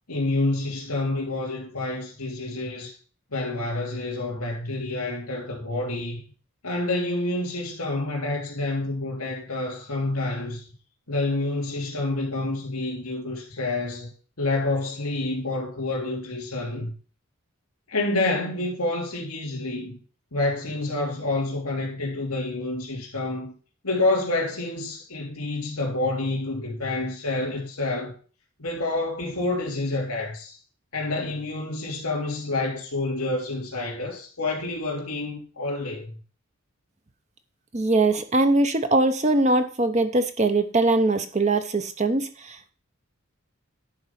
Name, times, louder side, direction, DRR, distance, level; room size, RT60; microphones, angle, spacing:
voice 1, 0.1-3.0 3.3-6.2 6.6-10.6 11.1-14.1 14.4-16.9 17.9-20.0 20.3-23.5 23.8-28.1 28.6-30.6 30.9-36.2, left 2 dB, 80° left, 3.0 m, -28 dB
voice 2, 37.7-42.7, right 2 dB, 30° right, 0.7 m, -22 dB
10.5 x 3.9 x 5.8 m
head